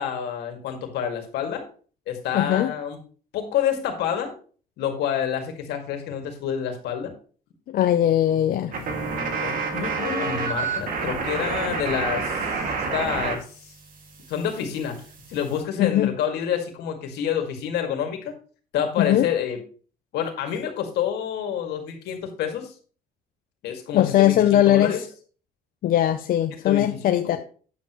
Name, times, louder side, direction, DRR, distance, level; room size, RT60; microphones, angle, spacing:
voice 1, 0.0-1.6 2.1-3.0 3.3-4.3 4.8-7.1 8.0-12.5 12.7-13.7 14.3-15.0 15.3-18.3 18.7-19.6 20.1-22.7 23.6-25.0 26.6-27.4, left 8 dB, 80° left, 2.2 m, -28 dB
voice 2, 2.3-2.7 7.7-8.7 15.8-16.1 19.0-19.3 23.9-25.0 25.8-27.4, left 12 dB, 60° left, 0.6 m, -20 dB
sound 1, 8.7-13.4 13.6-15.6, right 4 dB, 55° right, 2.3 m, -29 dB
9.3 x 8.0 x 3.1 m
cardioid pair, 110°, 17 cm